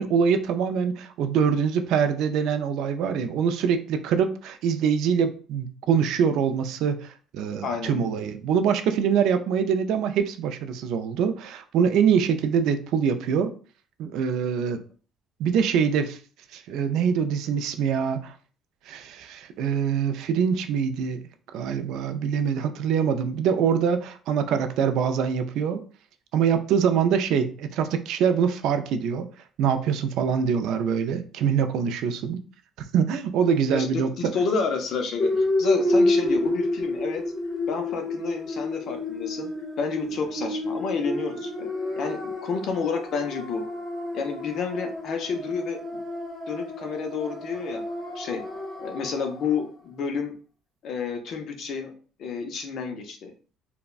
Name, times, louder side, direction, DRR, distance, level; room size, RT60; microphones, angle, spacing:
voice 1, 0.0-13.5 14.0-14.8 15.4-16.2 16.5-18.3 18.9-21.2 21.5-25.8 26.3-29.3 29.6-32.4 32.9-34.3, right 7 dB, 65° right, 8 dB, 0.3 m, -24 dB
voice 2, 7.6-8.0 33.7-37.2 37.7-39.5 39.8-41.7 42.0-43.6 44.1-46.0 46.5-47.8 48.1-48.4 48.8-50.3 50.8-51.9 52.2-53.3, left 5 dB, 50° left, 4 dB, 0.5 m, -30 dB
sound 1, 35.2-49.4, left 2 dB, 5° right, 1.1 m, -29 dB
3.4 x 2.1 x 2.3 m, 0.39 s
cardioid pair, 165°, 0 cm